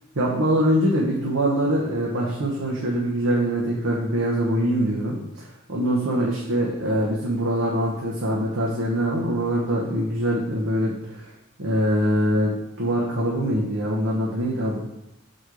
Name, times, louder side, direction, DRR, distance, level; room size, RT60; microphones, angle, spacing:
voice 1, 0.1-11.3 11.6-14.8, equal, 85° right, -3 dB, 1.0 m, -23 dB
6.2 x 4.3 x 4.8 m, 0.90 s
head